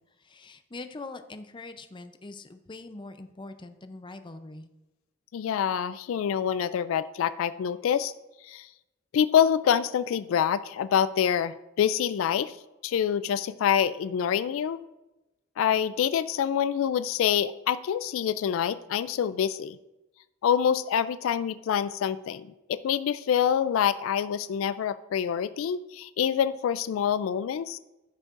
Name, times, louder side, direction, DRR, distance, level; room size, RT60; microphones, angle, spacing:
voice 1, 0.2-4.7, left 2 dB, 25° left, 9 dB, 0.5 m, -43 dB
voice 2, 5.3-8.1 8.4-8.7 9.1-12.5 12.8-14.8 15.6-19.8 20.4-27.8, left 8 dB, 75° left, 15 dB, 0.3 m, -26 dB
14.5 x 6.4 x 2.5 m, 0.99 s
head